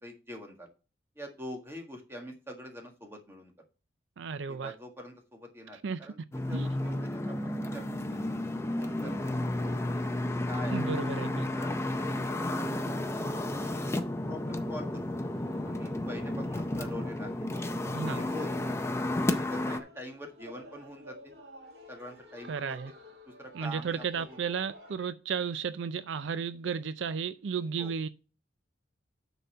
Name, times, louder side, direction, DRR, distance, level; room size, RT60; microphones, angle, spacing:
voice 1, 0.0-0.7 1.1-3.5 4.5-6.2 6.5-7.8 8.1-8.2 8.5-9.4 10.5-11.0 11.3-12.3 12.8-13.6 14.3-15.0 15.6-17.3 18.1-18.5 18.8-21.3 21.9-22.9 23.3-24.4 27.8-27.9, equal, 15° right, 1.6 m, -45 dB
voice 2, 4.2-4.7 5.8-6.0 6.5-6.7 10.7-11.5 17.9-18.2 22.5-22.9 23.5-28.1, right 6 dB, 80° right, 0.4 m, -33 dB
sound 1, 6.3-19.8, left 1 dB, 15° left, 0.5 m, -32 dB
sound 2, 15.3-25.0, equal, 60° right, 1.9 m, -52 dB
9.2 x 4.1 x 5.5 m
head